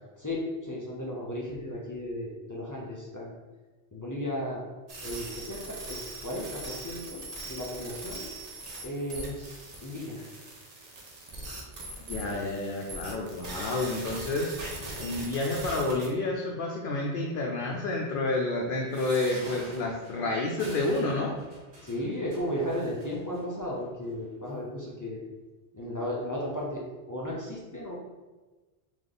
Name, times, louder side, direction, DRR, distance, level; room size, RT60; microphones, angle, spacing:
voice 1, 0.2-3.3 3.9-4.6 5.0-8.3 8.8-10.2 12.3-12.4 21.8-25.2 25.7-26.8 27.1-28.0, left 1 dB, 20° left, -4 dB, 0.6 m, -35 dB
sound 1, 4.9-16.1, right 2 dB, 40° right, 0.7 m, -41 dB
voice 2, 12.1-14.7 15.0-21.4, left 2 dB, 60° left, -1 dB, 0.7 m, -29 dB
sound 2, 18.9-23.4 24.1-24.2 24.5-24.6, right 1 dB, 75° right, 1.3 m, -46 dB
3.5 x 3.1 x 3.8 m, 1.2 s
omnidirectional pair, 1.1 m